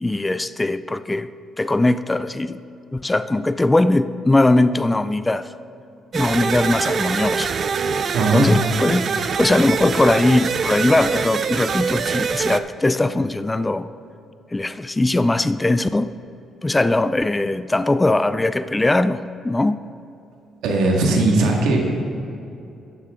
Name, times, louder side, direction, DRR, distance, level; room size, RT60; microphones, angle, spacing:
voice 1, 0.0-1.3 1.6-2.6 2.9-5.5 6.1-7.5 8.3-9.1 9.4-13.9 14.5-16.1 16.6-19.8, left 2 dB, 15° left, 13 dB, 0.3 m, -20 dB
sound 1, 6.1-12.6, right 6 dB, 50° right, 0.4 m, -24 dB
voice 2, 8.1-8.5 20.6-21.9, right 2 dB, 90° right, 0 dB, 1.9 m, -18 dB
11.5 x 8.9 x 3.7 m, 2.7 s
cardioid pair, 90°, 0 cm